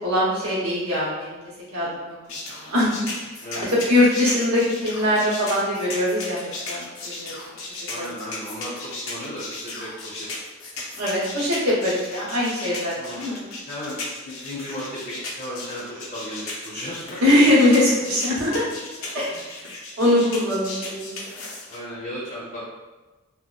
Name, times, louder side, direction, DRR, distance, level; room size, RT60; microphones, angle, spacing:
voice 1, 0.0-1.4 1.7-2.2 2.6-3.0 3.5-7.3 8.0-8.1 11.0-13.4 17.2-18.7 19.1-19.3 20.0-21.1, left 1 dB, 90° right, -6 dB, 0.9 m, -21 dB
sound 1, 2.3-21.8, left 3 dB, 75° left, 0.5 m, -36 dB
voice 2, 7.9-10.3 12.9-13.2 13.7-14.0 14.2-17.2 19.3-19.4 21.7-22.6, equal, 35° left, -8 dB, 0.6 m, -35 dB
2.8 x 2.0 x 2.3 m, 1.2 s
head